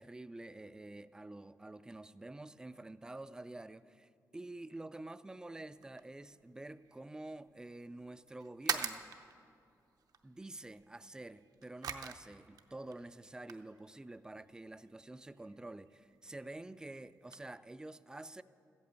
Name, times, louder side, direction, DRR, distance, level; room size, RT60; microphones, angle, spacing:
voice 1, 0.0-9.1 10.2-18.4, right 2 dB, 10° right, 14 dB, 0.3 m, -48 dB
sound 1, 5.7-17.4, right 7 dB, 70° right, 0.7 m, -47 dB
13.5 x 8.5 x 8.1 m, 2.5 s
cardioid pair, 120°, 7 cm